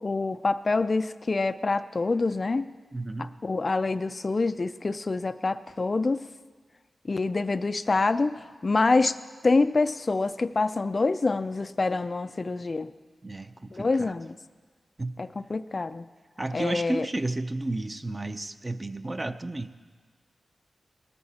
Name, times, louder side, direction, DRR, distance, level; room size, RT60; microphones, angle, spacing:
voice 1, 0.0-2.7 3.2-6.3 7.1-9.2 9.4-12.9 13.7-14.4 15.2-16.0 16.5-17.1, left 3 dB, 35° left, 12 dB, 0.3 m, -26 dB
voice 2, 2.9-3.3 13.2-14.1 15.0-15.1 16.4-19.7, right 2 dB, 25° right, 10 dB, 0.5 m, -32 dB
19.0 x 13.5 x 4.2 m, 1.5 s
wide cardioid pair, 130°, 0 cm